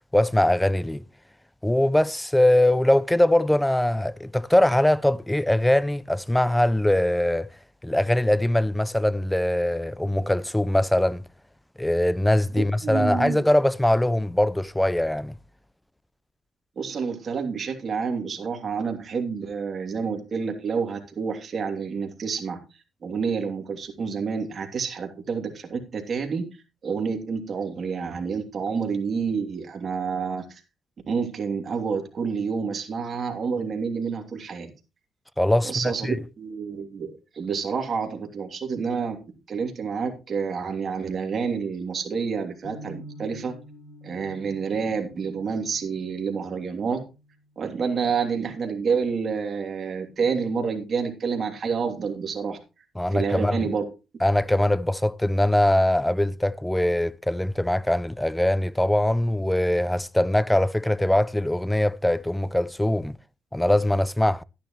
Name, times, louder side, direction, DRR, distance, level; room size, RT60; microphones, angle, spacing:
voice 1, 0.1-1.0 1.6-7.5 7.8-11.2 11.8-15.4 35.4-36.2 53.0-53.6 54.2-63.2 63.5-64.4, left 1 dB, 5° left, 0.5 m, -22 dB
voice 2, 12.5-13.4 16.8-22.6 23.0-26.5 26.8-30.6 31.1-34.7 35.6-39.2 39.5-43.5 44.0-47.0 47.6-52.6 53.1-53.8, right 5 dB, 50° right, 2.9 m, -28 dB
sound 1, 42.6-48.7, equal, 35° left, 3.4 m, -48 dB
12.5 x 10.5 x 3.1 m
cardioid pair, 90°, 0 cm